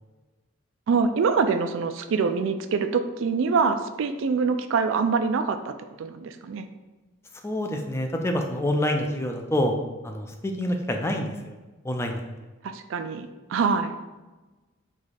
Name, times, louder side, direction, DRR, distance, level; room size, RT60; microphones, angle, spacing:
voice 1, 0.9-6.7 12.6-14.0, right 5 dB, 65° right, 9 dB, 0.3 m, -25 dB
voice 2, 7.4-9.7 10.0-11.5 11.8-12.2, left 1 dB, 15° left, 3 dB, 0.3 m, -27 dB
4.8 x 2.4 x 4.1 m, 1.2 s
head